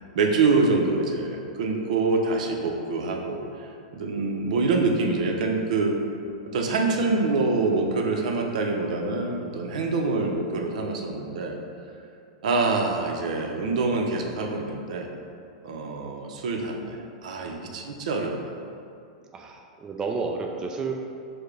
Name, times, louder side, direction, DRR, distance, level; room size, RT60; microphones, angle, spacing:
voice 1, 0.1-6.0 6.4-11.6 12.4-15.1 15.6-18.5, right 3 dB, 70° right, 1 dB, 0.6 m, -25 dB
voice 2, 19.3-20.9, right 4 dB, 15° right, 1 dB, 0.3 m, -31 dB
4.7 x 2.1 x 4.7 m, 2.4 s
hypercardioid pair, 130°, 4 cm